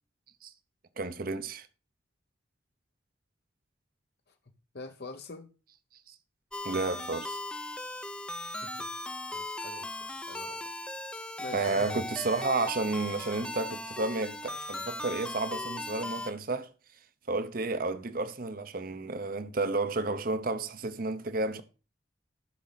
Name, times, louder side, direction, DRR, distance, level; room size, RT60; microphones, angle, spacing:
voice 1, 1.0-1.7 6.1-6.2 6.6-7.4 11.5-16.7 17.3-21.6, right 3 dB, 50° right, 0.8 m, -31 dB
voice 2, 4.7-5.5 8.4-8.9 9.3-12.0, left 3 dB, 55° left, 0.8 m, -46 dB
sound 1, 6.5-16.3, left 1 dB, 5° left, 0.5 m, -38 dB
12.5 x 6.3 x 4.1 m
head